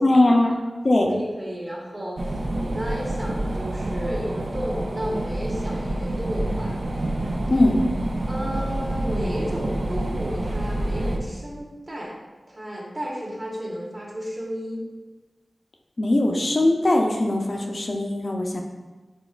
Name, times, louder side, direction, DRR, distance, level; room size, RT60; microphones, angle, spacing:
voice 1, 0.0-0.6 0.8-1.1 7.5-7.8 16.0-18.6, left 1 dB, 50° left, 1 dB, 0.5 m, -20 dB
voice 2, 1.1-6.8 8.3-12.1 12.5-14.8, equal, 40° right, -4 dB, 1.2 m, -32 dB
sound 1, 2.2-11.2, right 1 dB, 75° right, 0.5 m, -27 dB
5.0 x 3.7 x 2.4 m, 1.2 s
wide cardioid pair, 60°, 0 cm